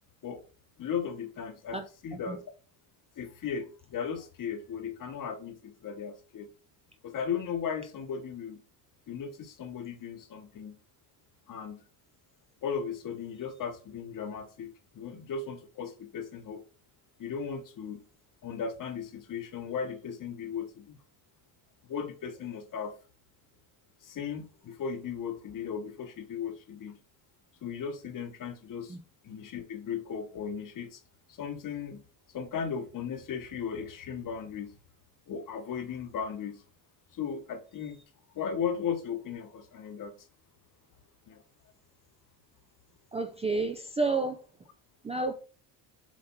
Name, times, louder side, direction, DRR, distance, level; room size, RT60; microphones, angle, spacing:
voice 1, 0.8-2.4 3.2-6.5 7.0-8.6 9.1-10.8 11.5-11.8 12.6-16.6 17.2-18.0 18.4-21.0 21.9-23.0 24.0-27.0 27.6-29.0 29.2-31.0 31.3-32.0 32.3-34.8 35.3-36.6 37.1-38.0 38.3-40.1 41.3-41.4, left 7 dB, 45° left, 1.2 m, -36 dB
voice 2, 43.1-44.4 45.0-45.3, right 3 dB, 15° right, 0.4 m, -30 dB
7.3 x 3.2 x 4.4 m
cardioid pair, 130°, 47 cm